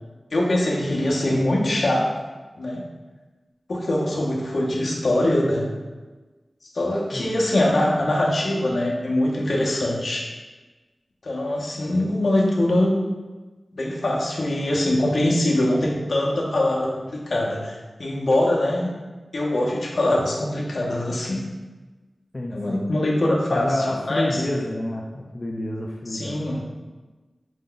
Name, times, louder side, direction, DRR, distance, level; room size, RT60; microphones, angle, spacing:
voice 1, 0.3-2.1 2.5-2.8 3.7-5.7 6.7-10.3 11.2-12.9 13.8-18.9 19.3-21.4 22.5-24.4 26.1-26.6, left 1 dB, 75° left, -3 dB, 0.8 m, -23 dB
voice 2, 22.3-22.9 23.5-26.4, left 1 dB, 40° left, -2 dB, 0.4 m, -29 dB
5.0 x 2.2 x 3.8 m, 1.2 s
wide cardioid pair, 80°, 0 cm